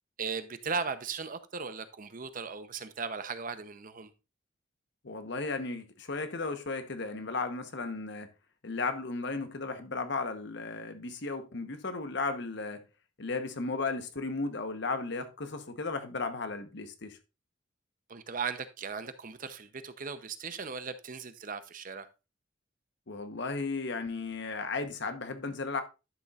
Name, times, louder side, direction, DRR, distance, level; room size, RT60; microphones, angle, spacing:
voice 1, 0.2-4.1 18.1-22.1, right 5 dB, 45° right, 0.8 m, -37 dB
voice 2, 5.0-8.3 8.6-12.8 13.2-17.2 23.1-25.8, left 3 dB, 60° left, 1.1 m, -35 dB
11.5 x 6.8 x 2.5 m
head